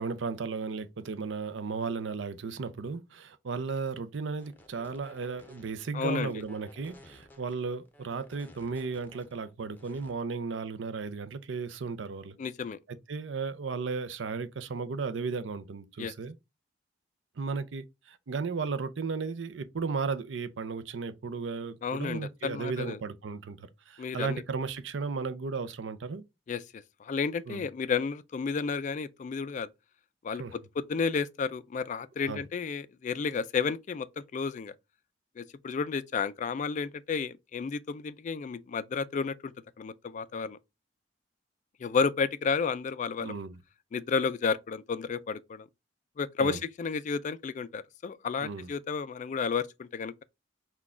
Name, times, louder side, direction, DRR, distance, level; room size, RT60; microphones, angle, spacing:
voice 1, 0.0-12.4 12.9-16.4 17.4-26.2 27.5-27.6 30.3-30.6 32.3-32.4 43.2-43.6 46.4-46.6 48.4-48.7, right 4 dB, 70° right, 0.5 m, -35 dB
sound 1, 4.3-10.1, left 1 dB, 10° left, 0.7 m, -55 dB
voice 2, 5.9-6.3 12.4-12.8 16.0-16.1 21.8-23.0 24.0-24.4 26.5-29.7 30.2-34.7 35.4-40.6 41.8-43.3 43.9-45.7 46.2-50.2, left 5 dB, 40° left, 0.3 m, -32 dB
5.9 x 2.3 x 3.6 m
head